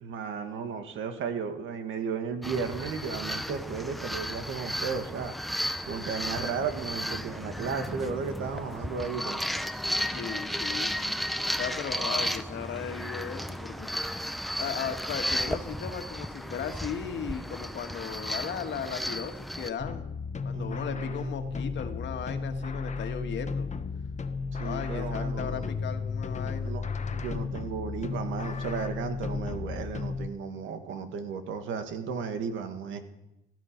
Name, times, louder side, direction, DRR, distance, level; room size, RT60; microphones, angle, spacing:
voice 1, 0.0-5.4 5.9-9.4 20.5-21.3 24.5-25.7 26.6-33.0, right 6 dB, 80° right, 7 dB, 1.9 m, -34 dB
sound 1, 2.4-19.7, equal, ahead, 0.8 m, -34 dB
voice 2, 10.1-11.1 11.6-13.9 14.6-20.1 20.4-23.7 24.6-26.7, left 7 dB, 65° left, 6 dB, 1.8 m, -36 dB
sound 2, 19.8-30.3, left 4 dB, 35° left, 1.1 m, -34 dB
16.5 x 14.5 x 5.2 m, 0.86 s
cardioid pair, 90°, 20 cm